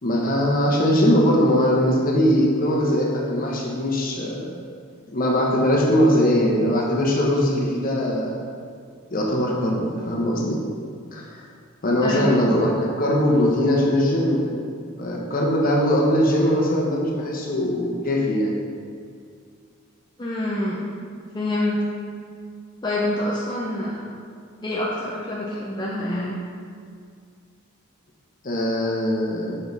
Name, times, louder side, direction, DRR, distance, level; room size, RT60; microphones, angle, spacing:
voice 1, 0.0-4.5 5.1-8.4 9.1-10.6 11.1-11.4 11.8-14.6 15.0-18.5 28.4-29.6, equal, 45° left, -2 dB, 1.0 m, -21 dB
voice 2, 12.0-12.3 20.2-20.9 21.3-21.9 22.8-24.1 24.6-26.4 28.8-29.0, left 1 dB, 20° left, -5 dB, 0.6 m, -26 dB
5.5 x 5.0 x 4.0 m, 2.2 s
head